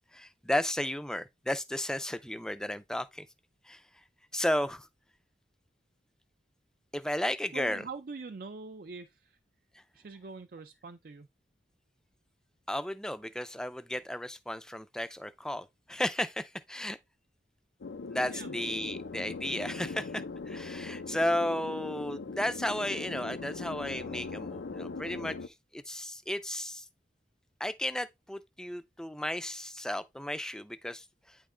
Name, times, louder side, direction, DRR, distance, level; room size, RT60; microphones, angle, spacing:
voice 1, 0.1-3.3 3.7-3.8 4.3-4.9 6.9-7.8 9.7-9.8 12.7-17.0 18.1-26.9 27.6-31.4, left 1 dB, 5° left, 0.4 m, -34 dB
voice 2, 7.5-9.4 9.9-11.3 18.3-18.5, right 4 dB, 55° right, 0.5 m, -44 dB
sound 1, 17.8-25.5, left 4 dB, 85° left, 0.6 m, -40 dB
9.1 x 3.3 x 3.7 m
head